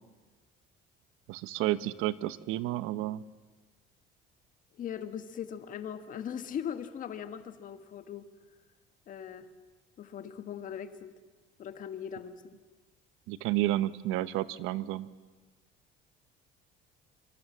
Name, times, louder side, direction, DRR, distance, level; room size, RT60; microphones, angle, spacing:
voice 1, 1.3-3.2 13.3-15.1, right 15 dB, 85° right, 15 dB, 1.0 m, -31 dB
voice 2, 4.7-8.3 9.1-9.5 10.0-11.1 11.6-12.5, left 8 dB, 40° left, 9 dB, 1.6 m, -39 dB
26.0 x 25.0 x 7.4 m, 1.3 s
cardioid pair, 165°, 21 cm